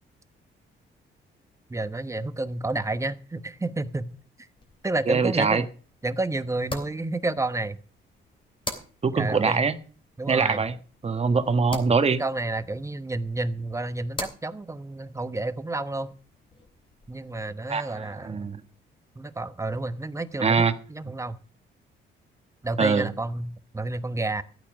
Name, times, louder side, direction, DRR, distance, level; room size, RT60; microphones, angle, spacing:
voice 1, 1.7-4.1 4.8-5.7 6.0-7.8 9.1-9.7 10.2-10.6 12.1-16.1 17.1-18.5 19.2-20.6 20.9-21.4 22.6-24.4, right 2 dB, 15° right, 12 dB, 1.0 m, -30 dB
sound 1, 4.6-17.4, left 2 dB, 25° left, 3.0 m, -44 dB
voice 2, 5.1-5.6 9.0-9.7 10.3-10.8 11.0-12.2 17.7-18.6 20.4-20.7 22.8-23.1, right 5 dB, 30° right, 10 dB, 1.4 m, -23 dB
13.5 x 8.7 x 6.1 m, 0.41 s
cardioid pair, 90°, 20 cm